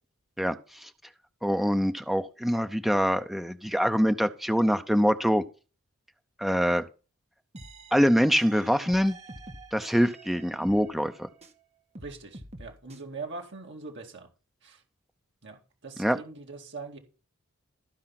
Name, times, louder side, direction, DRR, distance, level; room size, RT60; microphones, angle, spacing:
voice 1, 0.4-0.9 1.4-5.4 6.4-6.8 7.9-9.2 9.7-11.3 16.0-16.2, equal, ahead, 0.6 m, -24 dB
sound 1, 7.5-11.6 11.9-13.0, right 1 dB, 30° right, 1.4 m, -47 dB
voice 2, 12.0-14.3 14.6-14.8 15.4-17.0, right 3 dB, 55° right, 2.2 m, -42 dB
13.5 x 4.9 x 5.8 m
head